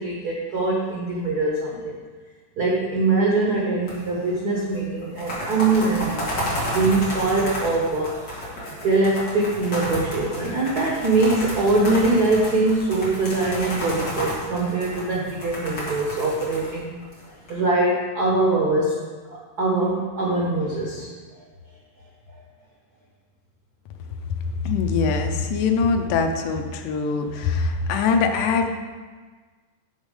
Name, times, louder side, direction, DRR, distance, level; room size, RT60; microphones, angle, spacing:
voice 1, 0.0-2.0 2.6-6.3 6.7-8.3 8.8-16.9 17.5-18.9 19.3-21.1, right 2 dB, 85° right, -3 dB, 0.8 m, -22 dB
sound 1, 3.9-4.3 4.6-4.7 5.0-17.5, equal, 35° left, 2.4 m, -31 dB
voice 2, 24.6-28.7, left 5 dB, 90° left, 4 dB, 2.3 m, -22 dB
6.8 x 6.3 x 5.2 m, 1.4 s
omnidirectional pair, 3.5 m